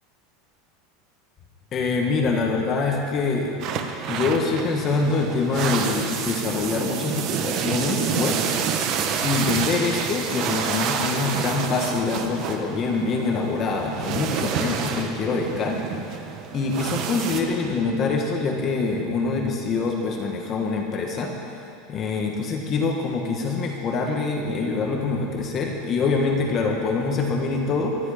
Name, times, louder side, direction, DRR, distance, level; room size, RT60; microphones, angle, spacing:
voice 1, 1.7-3.6 4.1-8.5 9.2-16.3 16.5-21.3 21.9-28.0, left 4 dB, 25° left, 1 dB, 1.4 m, -25 dB
sound 1, 3.6-17.4, right 7 dB, 35° right, 1.1 m, -28 dB
sound 2, 8.8-19.0, left 3 dB, 60° left, 4.1 m, -48 dB
23.0 x 11.0 x 5.1 m, 2.6 s
supercardioid pair, 175°, 0 cm